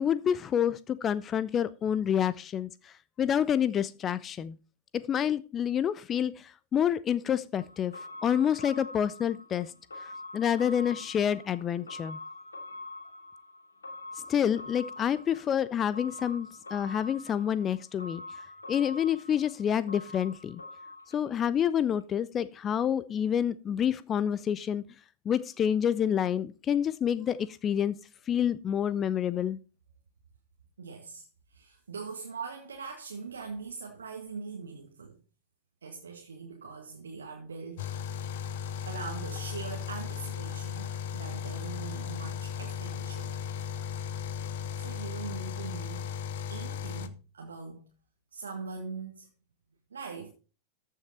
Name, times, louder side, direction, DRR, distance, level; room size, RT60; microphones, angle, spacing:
voice 1, 0.0-2.9 3.2-4.6 4.9-7.9 8.2-9.7 10.0-12.2 14.3-18.2 18.7-20.6 21.1-24.8 25.3-28.0 28.3-29.6, left 9 dB, 25° left, 0.5 m, -28 dB
sound 1, 7.5-21.7 22.0-22.1, left 2 dB, 75° left, 2.3 m, -45 dB
voice 2, 30.8-35.2 35.8-38.4 38.8-43.3 44.7-46.1 46.5-47.9 48.3-49.3 49.9-50.3, right 5 dB, 70° right, 1.8 m, -42 dB
sound 2, 37.8-47.1, left 8 dB, 55° left, 0.9 m, -36 dB
14.0 x 6.4 x 4.2 m
figure-of-eight pair, 90°, 0 cm